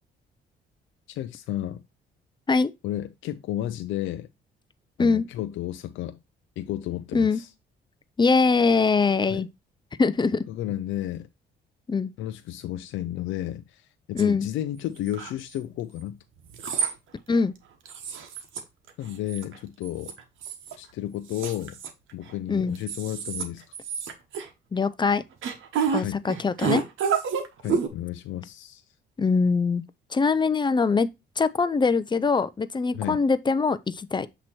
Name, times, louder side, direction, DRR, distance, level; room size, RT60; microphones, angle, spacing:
voice 1, 1.1-1.8 2.8-4.3 5.0-6.2 6.6-7.5 9.3-9.5 10.5-11.3 12.2-16.2 19.0-20.1 20.8-21.8 22.1-23.7 25.9-26.2 27.6-28.8 32.9-33.2, left 13 dB, 80° left, 0.4 m, -32 dB
voice 2, 8.2-9.5 10.0-10.4 11.9-12.1 14.1-14.5 17.3-17.5 22.5-22.8 24.7-25.2 25.9-26.8 29.2-29.8 30.1-31.1 31.4-34.3, left 4 dB, 25° left, 0.5 m, -22 dB
sound 1, 14.2-14.3 15.0-15.6 16.5-16.9 17.3-17.4 17.9-18.6 18.9-19.6 19.8-20.7 21.3-22.3 22.7-23.4 23.7-24.5 25.4-26.0 26.3-27.9, right 6 dB, 80° right, 1.1 m, -29 dB
7.7 x 3.0 x 4.2 m
cardioid pair, 90°, 20 cm